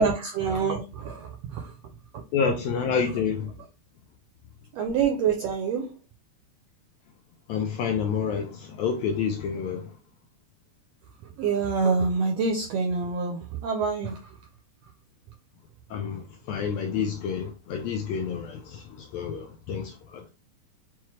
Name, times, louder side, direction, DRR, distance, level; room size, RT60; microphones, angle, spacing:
voice 1, 0.0-1.7 2.1-2.2 4.7-5.9 11.4-14.4, right 5 dB, 85° right, 1.4 m, -26 dB
voice 2, 2.3-3.5 7.5-10.0 15.9-20.3, left 6 dB, 80° left, 1.6 m, -29 dB
5.7 x 2.3 x 3.0 m
omnidirectional pair, 3.5 m